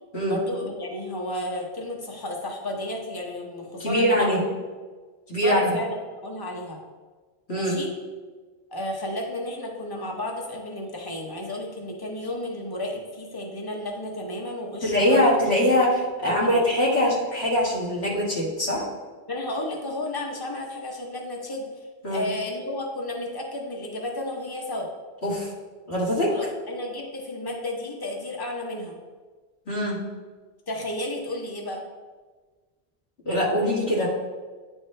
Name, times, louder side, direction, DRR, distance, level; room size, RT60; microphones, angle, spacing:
voice 1, 0.3-4.5 5.4-6.0 6.2-6.8 7.5-7.9 8.7-15.3 16.3-16.6 19.3-21.7 22.1-24.9 26.3-29.0 30.7-31.8 33.9-34.1, left 1 dB, 25° left, 0 dB, 0.8 m, -32 dB
voice 2, 3.8-4.4 5.3-5.7 7.5-7.8 14.8-18.8 22.0-22.3 25.2-25.5 25.9-26.3 29.7-30.0 33.3-34.1, equal, 85° left, -6 dB, 1.9 m, -22 dB
9.5 x 3.2 x 3.2 m, 1.4 s
omnidirectional pair, 1.1 m